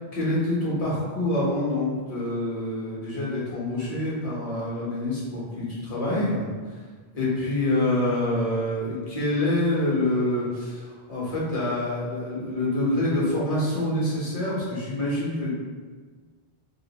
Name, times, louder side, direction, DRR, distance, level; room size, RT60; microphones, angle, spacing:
voice 1, 0.1-6.5 7.1-15.5, left 1 dB, 40° left, -7 dB, 1.2 m, -26 dB
3.1 x 2.6 x 4.0 m, 1.5 s
omnidirectional pair, 1.0 m